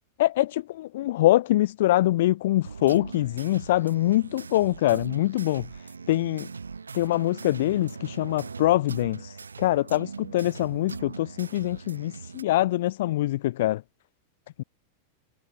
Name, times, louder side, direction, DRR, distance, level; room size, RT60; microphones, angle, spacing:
voice 1, 0.2-5.7 6.1-6.5 6.9-9.3 9.6-13.8 14.6-14.7, left 15 dB, 55° left, 0.3 m, -24 dB
sound 1, 2.6-12.4, right 5 dB, 75° right, 1.3 m, -40 dB
figure-of-eight pair, 90°, 0 cm